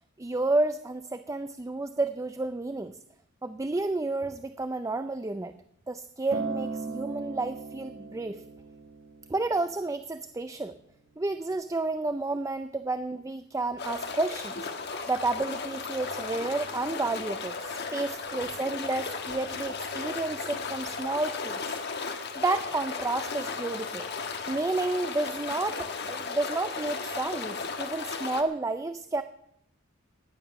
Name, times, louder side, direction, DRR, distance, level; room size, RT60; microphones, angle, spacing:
voice 1, 0.2-3.0 3.4-5.5 5.9-8.4 9.3-10.7 11.2-14.7 15.1-17.5 17.9-21.6 22.0-24.1 24.5-29.2, right 2 dB, 15° right, 11 dB, 0.5 m, -31 dB
Acoustic guitar, 6.3-10.6 11.4-11.5, right 4 dB, 80° right, 1.7 m, -38 dB
sound 1, 13.8-28.4, left 4 dB, 55° left, 1.5 m, -35 dB
15.5 x 10.0 x 5.9 m, 0.74 s
head